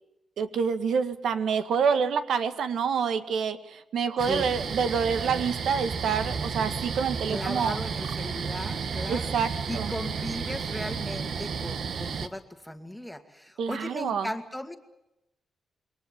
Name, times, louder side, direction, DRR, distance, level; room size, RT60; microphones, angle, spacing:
voice 1, 0.4-7.8 9.1-9.9 13.6-14.3, right 6 dB, 80° right, 10 dB, 1.8 m, -27 dB
sound 1, 4.2-12.3, right 5 dB, 60° right, 1.6 m, -32 dB
voice 2, 7.3-9.3 9.7-14.8, left 1 dB, 5° left, 7 dB, 2.3 m, -37 dB
27.5 x 23.0 x 7.6 m, 0.89 s
wide cardioid pair, 150°, 0 cm